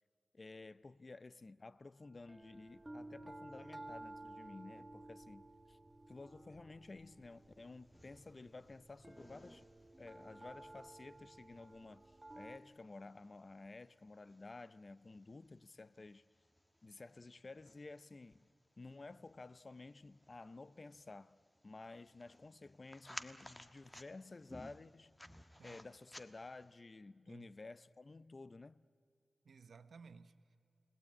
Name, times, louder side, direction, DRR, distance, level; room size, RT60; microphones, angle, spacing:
voice 1, 0.3-5.8 6.1-9.6 10.0-16.3 16.8-18.5 18.8-21.4 21.6-25.1 25.6-28.8, left 3 dB, 40° left, 0.6 m, -53 dB
sound 1, 2.2-12.6, right 1 dB, 15° right, 1.3 m, -55 dB
sound 2, 7.3-26.7, left 1 dB, 15° left, 1.2 m, -59 dB
voice 2, 29.4-30.6, right 5 dB, 80° right, 0.9 m, -58 dB
30.0 x 18.0 x 8.6 m
cardioid pair, 70°, 0 cm